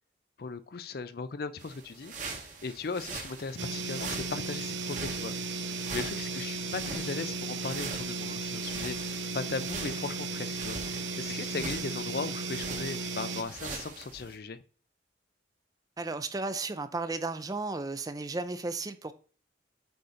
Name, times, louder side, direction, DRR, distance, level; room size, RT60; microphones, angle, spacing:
voice 1, 0.4-5.5 5.9-14.6, left 4 dB, 55° left, 0.5 m, -38 dB
sound 1, 1.6-14.4, right 4 dB, 45° right, 1.2 m, -43 dB
sound 2, 3.6-13.4, right 3 dB, 85° right, 0.7 m, -35 dB
voice 2, 16.0-19.1, right 3 dB, 20° right, 0.4 m, -34 dB
7.9 x 2.8 x 5.0 m
head